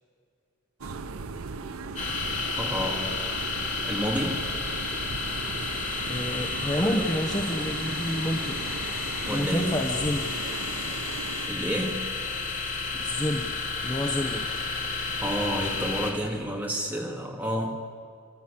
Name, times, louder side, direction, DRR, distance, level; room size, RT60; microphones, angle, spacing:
sound 1, 0.8-11.5, right 4 dB, 90° right, 0.8 m, -38 dB
sound 2, 2.0-16.1, left 3 dB, 35° left, 4.0 m, -31 dB
voice 1, 2.6-3.1 3.8-4.5 6.8-7.1 9.3-9.8 11.5-12.1 15.2-17.8, equal, 10° right, -2 dB, 3.1 m, -30 dB
voice 2, 6.1-8.6 9.2-10.4 13.0-13.5 13.8-14.5, left 1 dB, 20° left, 2 dB, 1.2 m, -29 dB
30.0 x 12.5 x 8.7 m, 2.3 s
head